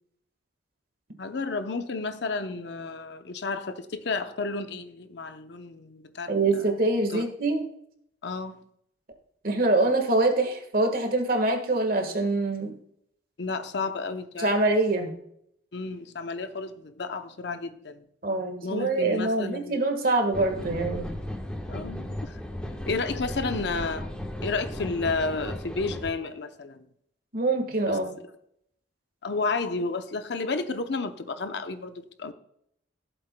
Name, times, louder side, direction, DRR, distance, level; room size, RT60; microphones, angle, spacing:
voice 1, 1.2-6.4 7.1-7.2 8.2-8.6 13.4-14.5 15.7-18.0 18.6-19.8 21.7-22.4 22.9-24.1 24.4-26.9 27.9-28.0 29.2-32.3, left 3 dB, 60° left, 9 dB, 0.7 m, -31 dB
voice 2, 6.3-7.7 9.4-12.8 14.4-15.1 18.2-21.1 27.3-28.1, right 2 dB, 50° right, 5 dB, 1.5 m, -25 dB
sound 1, 20.3-26.1, left 1 dB, 5° left, 1.1 m, -35 dB
15.5 x 7.8 x 2.2 m, 0.72 s
head